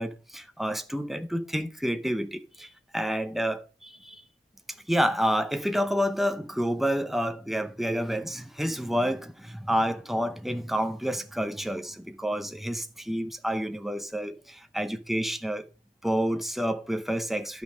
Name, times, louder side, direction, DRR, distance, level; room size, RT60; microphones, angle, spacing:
voice 1, 0.0-4.2 4.9-15.7 16.0-17.6, equal, ahead, 0.6 m, -29 dB
11.5 x 5.4 x 5.0 m
head